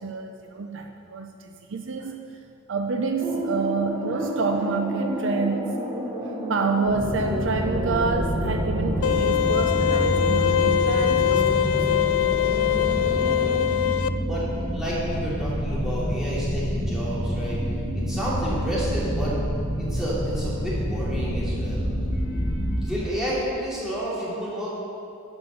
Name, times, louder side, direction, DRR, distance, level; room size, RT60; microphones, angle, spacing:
voice 1, 0.0-2.3 2.7-5.7 6.2-11.8, right 4 dB, 60° right, 5 dB, 0.5 m, -28 dB
sound 1, 3.2-13.6, equal, 20° right, 1.1 m, -31 dB
sound 2, 6.9-22.9, equal, 40° left, 2.8 m, -28 dB
sound 3, 9.0-14.1, left 11 dB, 75° left, 0.4 m, -22 dB
voice 2, 13.0-13.6 14.2-14.4 14.7-17.6 17.9-19.3 19.8-24.8, equal, ahead, -9 dB, 2.9 m, -31 dB
10.5 x 6.0 x 6.9 m, 2.6 s
head